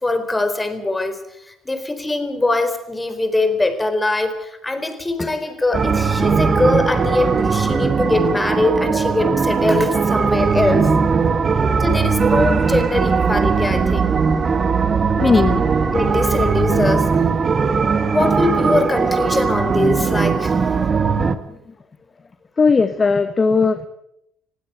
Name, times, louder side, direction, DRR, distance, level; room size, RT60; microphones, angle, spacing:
voice 1, 0.0-10.9 11.8-14.2 15.2-15.4 15.9-17.1 18.1-20.6, left 2 dB, 15° left, 10 dB, 4.1 m, -22 dB
sound 1, 5.7-21.4, right 5 dB, 35° right, 1.9 m, -19 dB
voice 2, 15.1-15.7 21.7-21.8 22.6-23.9, left 4 dB, 35° left, 10 dB, 1.3 m, -17 dB
21.0 x 16.0 x 8.1 m, 0.78 s
hypercardioid pair, 60°, 0 cm